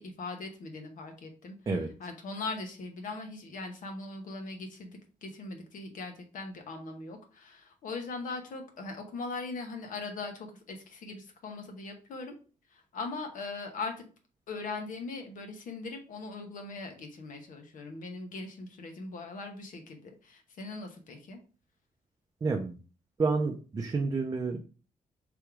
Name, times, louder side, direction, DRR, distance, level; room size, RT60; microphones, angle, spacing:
voice 1, 0.0-1.5 2.0-12.3 12.7-14.1 14.5-21.4, left 3 dB, 65° left, 4 dB, 1.1 m, -40 dB
voice 2, 22.4-22.8 23.2-24.6, right 4 dB, 25° right, 3 dB, 0.5 m, -29 dB
3.5 x 3.2 x 4.8 m, 0.36 s
cardioid pair, 145°, 15 cm